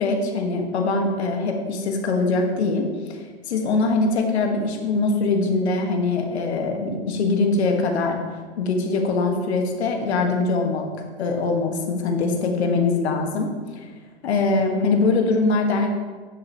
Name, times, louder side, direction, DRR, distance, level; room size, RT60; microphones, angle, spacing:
voice 1, 0.0-3.2 3.5-8.2 8.6-10.9 11.2-13.5 14.2-15.9, left 3 dB, 70° left, 2 dB, 1.5 m, -22 dB
9.8 x 6.5 x 2.9 m, 1.5 s
hypercardioid pair, 145°, 34 cm